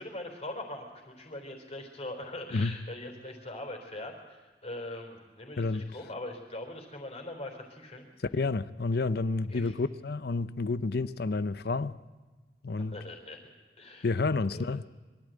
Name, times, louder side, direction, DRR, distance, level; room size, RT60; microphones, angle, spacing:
voice 1, 0.0-8.1 9.5-9.7 12.8-13.5 13.8-14.1 14.5-14.7, left 1 dB, 40° left, 4.0 m, -42 dB
voice 2, 8.3-12.0 12.6-13.0 14.0-14.8, left 3 dB, 60° left, 0.6 m, -30 dB
22.5 x 13.5 x 9.1 m
head